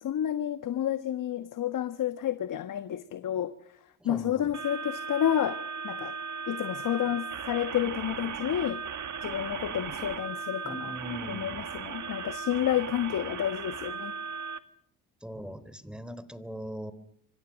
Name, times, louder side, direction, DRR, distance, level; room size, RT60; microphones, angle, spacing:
voice 1, 0.0-3.5 4.0-6.2 6.5-8.8 9.2-10.8 11.3-14.1, left 11 dB, 55° left, 1.3 m, -30 dB
voice 2, 4.0-4.6 10.6-11.6 15.2-16.9, equal, ahead, 3.5 m, -40 dB
sound 1, 4.5-14.6, right 6 dB, 50° right, 2.1 m, -37 dB
26.5 x 24.5 x 6.4 m
hypercardioid pair, 55°, 37 cm